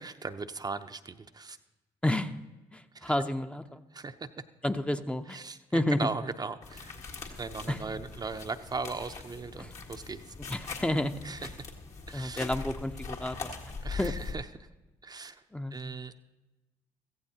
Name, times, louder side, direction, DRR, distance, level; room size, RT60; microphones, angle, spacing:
voice 1, 0.0-1.6 2.9-3.1 3.9-4.3 5.3-7.0 7.4-10.3 11.2-11.5 12.1-12.5 13.8-14.4 15.0-15.4 15.7-16.1, right 4 dB, 30° right, 8 dB, 0.6 m, -38 dB
voice 2, 2.0-2.4 2.7-3.8 4.6-5.4 5.7-6.1 7.7-7.8 9.6-9.8 10.4-11.3 12.1-13.6 14.0-14.2 15.5-15.8, left 1 dB, 10° left, 7 dB, 0.6 m, -30 dB
sound 1, 6.6-14.3, left 4 dB, 65° left, 1.8 m, -41 dB
16.0 x 14.5 x 2.8 m, 1.1 s
hypercardioid pair, 55°, 13 cm